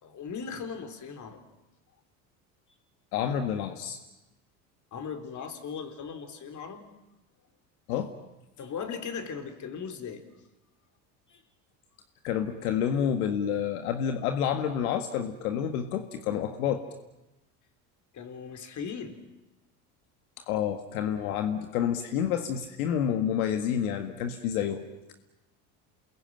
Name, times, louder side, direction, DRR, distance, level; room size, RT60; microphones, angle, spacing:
voice 1, 0.0-1.4 4.9-6.9 8.6-10.2 11.3-11.4 18.1-19.2, left 6 dB, 40° left, 8 dB, 4.1 m, -38 dB
voice 2, 3.1-4.0 7.9-8.1 12.2-16.8 20.4-24.8, left 9 dB, 80° left, 7 dB, 1.9 m, -29 dB
28.5 x 22.0 x 9.1 m, 0.97 s
hypercardioid pair, 85°, 43 cm